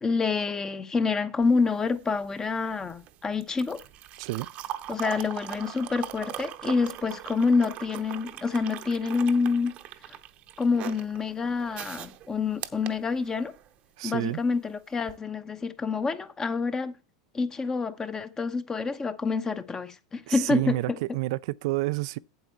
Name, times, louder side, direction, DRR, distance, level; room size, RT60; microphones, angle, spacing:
voice 1, 0.0-3.8 4.9-9.7 10.6-13.5 14.0-16.9 17.3-20.8, left 4 dB, 20° left, 0.9 m, -27 dB
sound 1, 1.4-13.7 15.0-15.2, right 12 dB, 45° right, 0.8 m, -41 dB
voice 2, 14.0-14.4 20.3-22.2, right 19 dB, 65° right, 0.3 m, -29 dB
8.0 x 7.8 x 4.4 m
hypercardioid pair, 105°, 3 cm